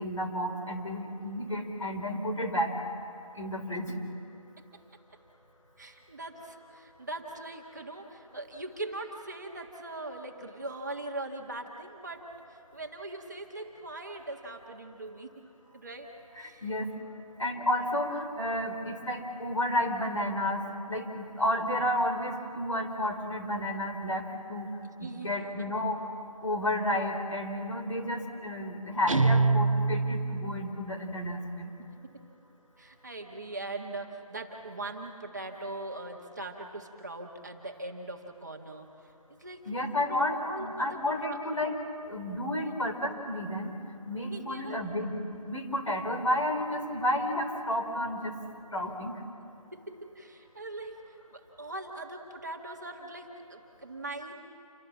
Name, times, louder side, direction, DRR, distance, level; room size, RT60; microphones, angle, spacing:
voice 1, 0.0-2.7 3.4-3.9 16.6-16.9 17.4-20.6 20.9-24.2 24.5-24.7 25.0-26.0 26.4-31.7 39.7-41.7 42.1-43.7 44.1-45.1 45.5-48.3 48.7-49.1, left 1 dB, 60° left, 4 dB, 4.2 m, -31 dB
voice 2, 5.8-15.4 15.7-16.7 25.0-25.7 30.0-30.1 31.8-32.2 32.8-39.7 40.0-41.5 42.6-42.8 44.3-44.9 49.7-54.3, right 2 dB, 30° right, 1 dB, 1.7 m, -41 dB
Guitar, 29.1-30.8, right 3 dB, 60° right, 0.7 m, -25 dB
28.5 x 24.5 x 7.4 m, 2.6 s
figure-of-eight pair, 170°, 19 cm